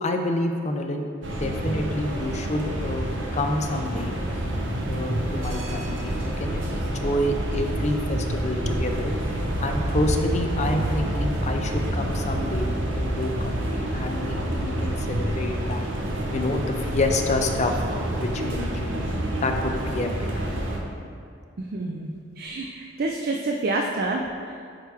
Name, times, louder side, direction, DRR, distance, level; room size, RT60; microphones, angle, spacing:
voice 1, 0.0-3.1 3.3-4.1 4.9-9.1 9.6-12.7 12.9-15.9 16.3-17.7 18.2-19.0 19.4-20.3, left 2 dB, 35° left, 4 dB, 0.5 m, -28 dB
sound 1, 1.2-20.8, right 1 dB, 65° right, 0.9 m, -28 dB
voice 2, 21.6-24.6, right 2 dB, 50° right, 1 dB, 0.4 m, -28 dB
8.9 x 4.7 x 3.5 m, 2.3 s
head